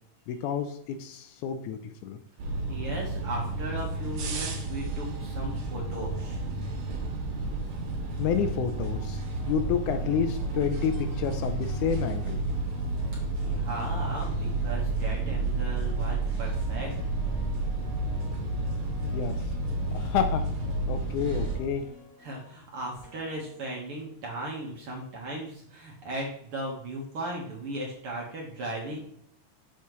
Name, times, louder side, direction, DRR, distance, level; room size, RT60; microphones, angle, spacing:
voice 1, 0.3-2.2 8.2-12.4 19.1-19.4 19.9-20.5 20.9-21.9, left 8 dB, 80° left, 8 dB, 2.0 m, -29 dB
sound 1, 2.4-21.6, right 2 dB, 75° right, 2.8 m, -31 dB
voice 2, 2.7-6.4 13.4-17.3 22.2-29.0, right 1 dB, 55° right, -2 dB, 1.8 m, -37 dB
sound 2, 9.4-24.2, equal, 5° left, 3.0 m, -52 dB
7.3 x 7.0 x 3.1 m, 0.68 s
omnidirectional pair, 3.7 m